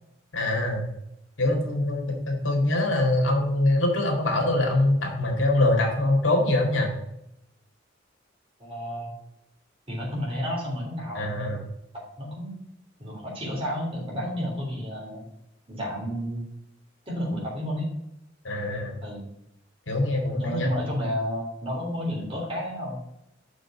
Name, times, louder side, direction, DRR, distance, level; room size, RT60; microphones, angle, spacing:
voice 1, 0.3-0.8 1.4-6.9 11.2-11.6 18.4-19.0 19.9-20.7, left 1 dB, 85° left, 1 dB, 2.1 m, -23 dB
voice 2, 8.6-9.1 9.9-11.6 12.2-12.6 13.0-15.3 15.7-16.4 17.0-17.9 19.0-19.3 20.4-23.0, equal, 30° right, -3 dB, 3.3 m, -31 dB
6.2 x 5.2 x 6.0 m, 0.81 s
head